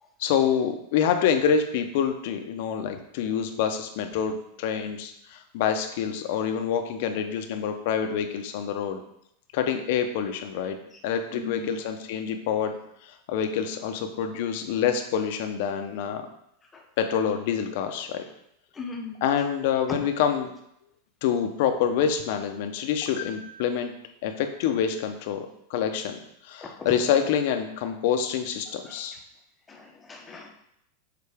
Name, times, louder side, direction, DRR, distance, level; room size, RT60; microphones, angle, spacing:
voice 1, 0.2-9.0 9.5-10.8 11.0-12.8 13.0-16.2 17.0-18.2 19.2-20.5 21.2-23.9 24.2-29.1, left 8 dB, 55° left, 6 dB, 0.7 m, -26 dB
voice 2, 11.3-11.8 16.7-16.8 18.7-19.4 19.9-20.0 26.6-26.7 28.7-29.2 29.7-30.5, left 3 dB, 15° left, 2 dB, 0.8 m, -39 dB
6.7 x 4.1 x 3.5 m, 0.77 s
supercardioid pair, 160°, 0 cm